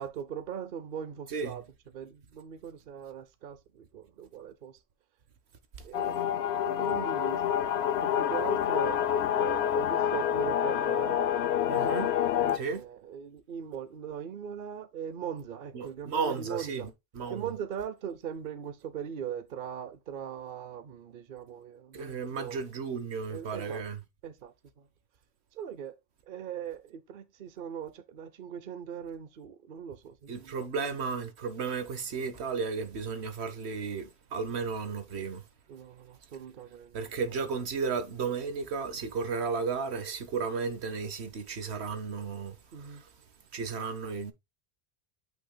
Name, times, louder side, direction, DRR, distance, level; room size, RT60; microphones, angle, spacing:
voice 1, 0.0-1.6 1.9-4.7 5.8-6.2 6.7-7.5 8.0-9.0 9.3-11.9 12.4-16.9 17.3-22.6 23.3-23.8 24.2-24.5 25.6-26.0 26.3-30.6 35.7-36.9 42.7-43.0, right 8 dB, 55° right, 0.9 m, -40 dB
voice 2, 1.3-1.6 11.7-12.1 12.5-12.8 15.7-17.5 21.9-24.0 30.3-35.4 36.9-43.1 43.5-44.3, right 5 dB, 80° right, 1.3 m, -34 dB
sound 1, 5.9-12.6, left 10 dB, 75° left, 0.9 m, -27 dB
8.7 x 5.7 x 2.2 m
omnidirectional pair, 1.1 m